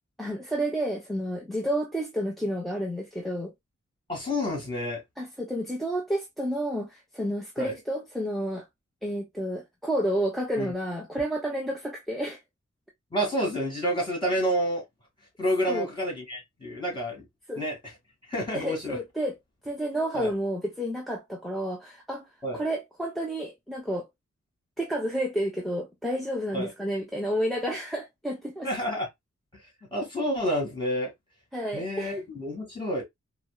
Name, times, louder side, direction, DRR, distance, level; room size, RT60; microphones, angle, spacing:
voice 1, 0.2-3.5 5.2-8.7 9.0-12.4 15.7-15.9 17.5-17.6 18.5-19.3 19.6-22.3 22.5-24.1 24.8-28.7 31.5-32.2, equal, ahead, 0.7 m, -30 dB
voice 2, 4.1-5.0 7.6-7.7 10.6-10.7 13.1-14.8 15.4-17.2 17.5-17.8 18.3-19.0 20.1-20.3 22.4-22.6 26.5-26.7 28.6-29.1 29.5-29.6 29.9-31.1 31.7-33.0, equal, 15° left, 2.1 m, -29 dB
4.2 x 2.1 x 2.2 m
wide cardioid pair, 75°, 30 cm